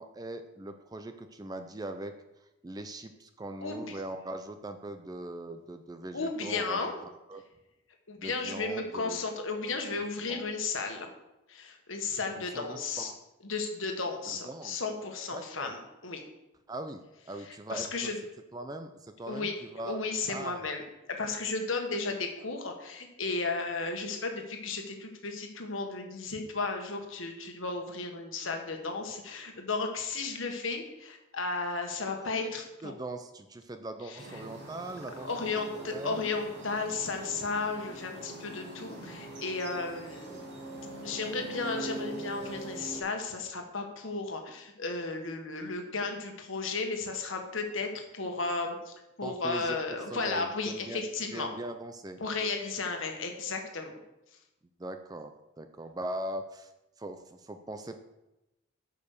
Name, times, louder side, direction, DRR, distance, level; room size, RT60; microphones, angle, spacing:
voice 1, 0.0-2.1 2.6-7.4 8.2-9.2 10.3-10.5 12.4-13.2 14.3-14.8 15.3-15.7 16.7-18.1 18.5-20.0 20.3-20.6 32.2-32.5 32.8-35.3 35.7-36.2 40.3-40.5 49.2-49.8 50.1-51.0 51.3-52.2 54.8-55.3 55.6-56.7 57.0-58.1, right 1 dB, 20° right, 7 dB, 0.4 m, -41 dB
voice 2, 3.6-4.0 6.1-6.9 8.1-11.1 11.5-13.1 13.4-16.2 17.4-18.2 19.3-19.5 19.8-20.8 21.2-32.9 34.0-34.4 35.2-40.5 41.0-51.5 52.2-53.9, left 3 dB, 75° left, 3 dB, 1.5 m, -34 dB
sound 1, 34.2-43.0, right 1 dB, 55° right, 2.8 m, -43 dB
8.9 x 5.4 x 6.6 m, 0.95 s
head